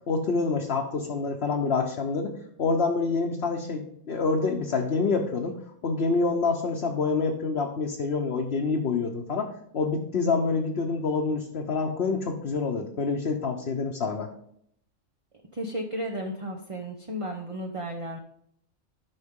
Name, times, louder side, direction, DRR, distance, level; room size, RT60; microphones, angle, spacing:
voice 1, 0.1-2.3 2.6-5.6 5.8-9.5 9.7-14.3, left 4 dB, 55° left, 0 dB, 1.1 m, -27 dB
voice 2, 15.5-18.2, equal, 30° right, 2 dB, 0.7 m, -33 dB
12.0 x 5.6 x 3.7 m, 0.69 s
omnidirectional pair, 1.3 m